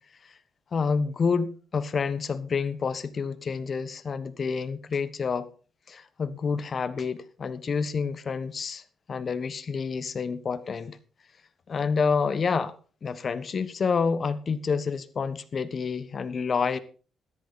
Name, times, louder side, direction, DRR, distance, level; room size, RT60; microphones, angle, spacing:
voice 1, 0.7-5.5 5.9-8.8 9.1-11.0 11.7-12.7 13.0-16.8, left 5 dB, 45° left, 1.2 m, -28 dB
13.5 x 11.5 x 4.1 m
cardioid pair, 90°, 0 cm